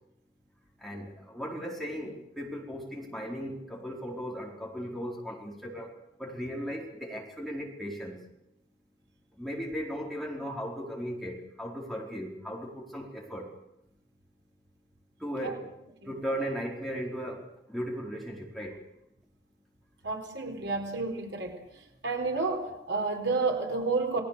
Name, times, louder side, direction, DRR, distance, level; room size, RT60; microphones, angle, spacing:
voice 1, 0.8-5.9 6.2-8.2 9.4-13.5 15.2-15.7 16.0-18.8, equal, ahead, -3 dB, 4.3 m, -37 dB
voice 2, 20.0-21.6 22.0-24.2, right 3 dB, 80° right, 3 dB, 4.1 m, -30 dB
29.0 x 19.5 x 6.8 m, 0.83 s
head